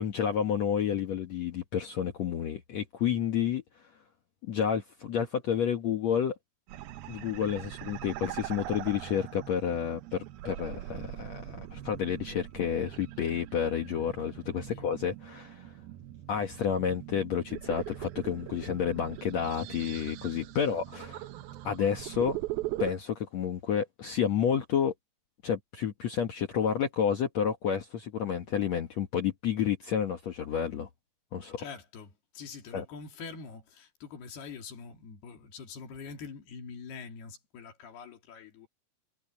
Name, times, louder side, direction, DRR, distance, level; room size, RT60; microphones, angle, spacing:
voice 1, 0.0-3.6 4.4-6.4 7.1-15.7 16.3-21.2 21.6-22.4 22.8-24.9 25.4-30.9 31.3-31.6 32.7-32.8, left 8 dB, 60° left, 2.1 m, -30 dB
sound 1, 6.7-22.9, right 15 dB, 75° right, 2.7 m, -41 dB
voice 2, 31.6-38.7, left 5 dB, 85° left, 5.0 m, -45 dB
omnidirectional pair, 4.5 m